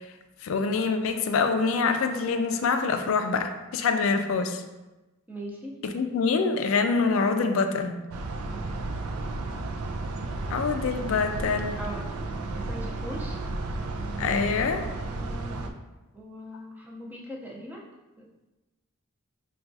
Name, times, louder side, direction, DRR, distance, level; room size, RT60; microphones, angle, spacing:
voice 1, 0.4-4.6 5.8-8.0 10.5-11.8 14.2-14.8, left 4 dB, 70° left, 7 dB, 0.3 m, -25 dB
voice 2, 5.3-5.8 11.8-12.1 12.5-13.4 15.0-15.7 16.1-17.8, equal, 10° right, -3 dB, 0.5 m, -40 dB
sound 1, 8.1-15.7, right 2 dB, 85° right, 0.4 m, -33 dB
5.7 x 2.3 x 2.6 m, 1.1 s
head